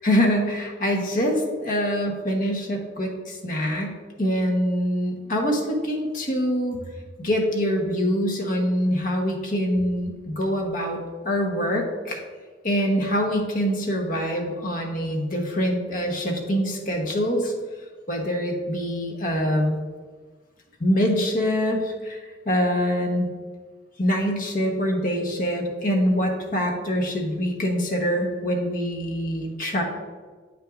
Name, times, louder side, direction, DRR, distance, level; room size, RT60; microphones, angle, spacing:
voice 1, 0.0-6.8 7.2-11.0 11.2-12.2 12.6-17.5 18.1-19.8 20.8-22.2 22.5-23.3 24.0-29.8, equal, 50° left, 1 dB, 1.1 m, -24 dB
8.5 x 5.9 x 2.5 m, 1.4 s
head